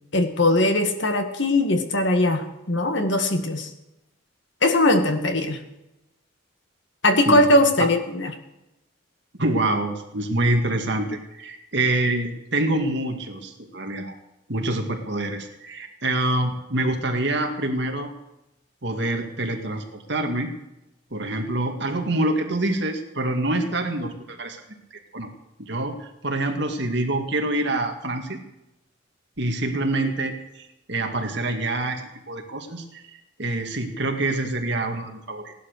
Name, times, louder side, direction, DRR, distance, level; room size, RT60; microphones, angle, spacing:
voice 1, 0.1-3.7 4.6-5.6 7.0-8.3, left 1 dB, 60° left, 6 dB, 1.9 m, -20 dB
voice 2, 9.4-14.1 14.5-18.1 18.8-20.5 21.1-24.6 25.1-25.3 25.6-28.4 29.4-33.0 33.4-35.5, right 2 dB, 55° right, 4 dB, 2.2 m, -26 dB
17.0 x 11.5 x 6.7 m, 0.91 s
head